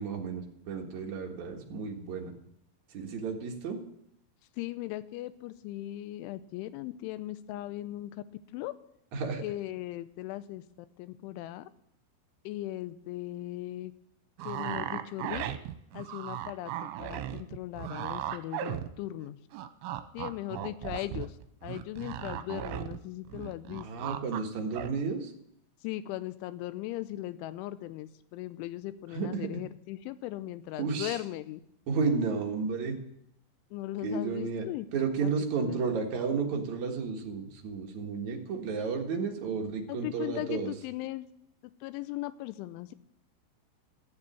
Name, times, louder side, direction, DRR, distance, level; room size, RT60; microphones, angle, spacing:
voice 1, 0.0-2.3 2.9-3.8 9.1-9.4 20.9-21.0 23.8-25.3 29.1-29.5 30.8-31.2 31.9-33.0 34.0-40.7, right 5 dB, 60° right, 1 dB, 1.9 m, -32 dB
voice 2, 4.6-8.1 8.5-8.7 9.4-11.7 12.4-13.9 14.4-15.5 15.9-19.4 20.1-21.4 21.6-24.2 25.8-31.6 33.7-35.8 39.9-41.3 41.8-42.9, left 15 dB, 80° left, 13 dB, 3.0 m, -38 dB
sound 1, 14.4-19.3 19.5-23.0 23.3-24.4 24.7-24.9, right 11 dB, 80° right, 3.1 m, -36 dB
15.0 x 7.2 x 9.1 m, 0.76 s
omnidirectional pair, 5.7 m